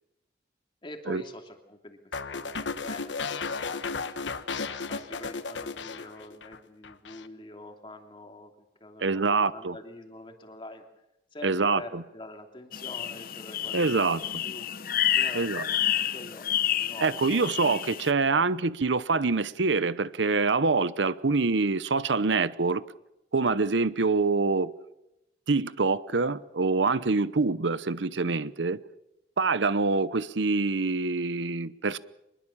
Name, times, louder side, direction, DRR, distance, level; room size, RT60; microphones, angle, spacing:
voice 1, 0.8-3.6 4.9-8.5 8.8-10.9 11.3-14.6 15.1-15.8 16.1-16.5 16.7-17.5, left 1 dB, 25° left, 2.8 m, -45 dB
sound 1, 2.1-6.6 6.8-7.3, left 4 dB, 80° left, 1.2 m, -34 dB
voice 2, 9.0-9.7 11.4-12.0 13.7-14.4 15.3-15.6 17.0-22.8 23.3-24.7 25.5-28.8 29.4-32.0, right 4 dB, 80° right, 0.8 m, -25 dB
sound 2, 12.7-18.1, left 11 dB, 50° left, 0.8 m, -29 dB
24.5 x 21.5 x 7.2 m
head